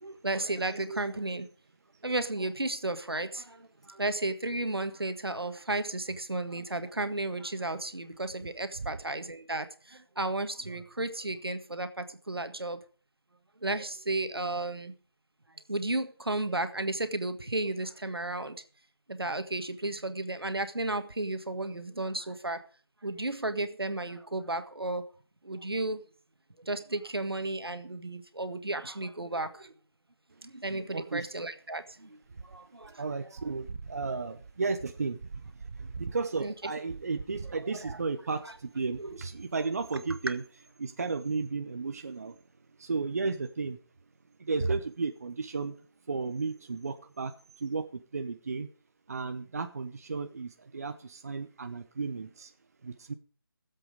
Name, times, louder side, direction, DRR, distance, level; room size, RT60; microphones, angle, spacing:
voice 1, 0.0-1.5 2.0-12.8 13.6-14.9 15.7-18.6 19.1-22.6 23.0-25.0 25.4-26.0 26.6-29.7 30.4-32.2 32.4-33.0 36.4-36.5 37.7-38.0 39.0-39.2, right 2 dB, 80° right, 1.6 m, -33 dB
voice 2, 30.9-31.3 33.0-40.4 40.8-42.4 42.8-43.8 44.4-45.8 46.1-48.7 49.1-52.5 52.8-53.1, right 4 dB, 40° right, 0.8 m, -34 dB
16.5 x 7.8 x 5.1 m
figure-of-eight pair, 160°, 13 cm